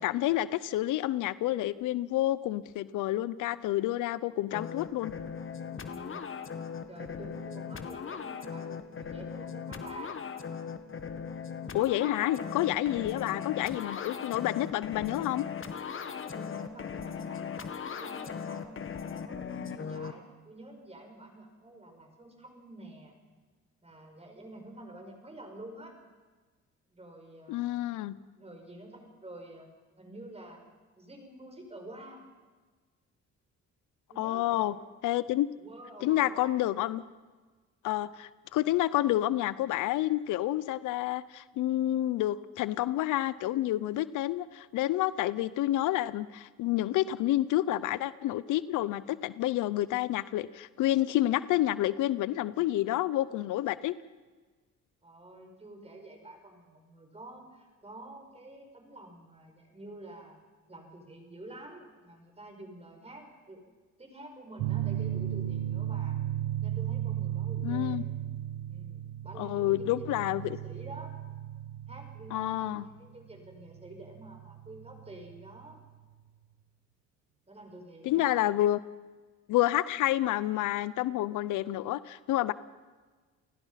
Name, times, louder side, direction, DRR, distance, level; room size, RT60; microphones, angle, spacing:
voice 1, 0.0-5.1 11.7-15.4 27.5-28.2 34.2-34.7 35.0-35.5 36.0-37.0 37.8-53.9 67.6-68.0 69.4-70.6 72.3-72.8 78.0-78.8 79.5-82.5, left 14 dB, 90° left, 17 dB, 0.7 m, -29 dB
sound 1, 4.5-20.1, left 6 dB, 45° left, 1.7 m, -38 dB
voice 2, 5.8-6.3 6.9-10.2 12.9-13.4 16.2-23.2 23.8-26.0 26.9-27.8 28.3-29.7 30.0-30.7 31.0-32.2 34.1-34.8 35.6-36.8 55.0-60.4 60.7-63.7 64.0-66.2 66.6-68.0 68.7-71.2 71.9-75.8 77.5-78.5, right 1 dB, 20° right, 3 dB, 6.0 m, -48 dB
sound 2, 64.6-75.8, right 12 dB, 90° right, 1.3 m, -35 dB
30.0 x 18.0 x 5.8 m, 1.4 s
cardioid pair, 90°, 30 cm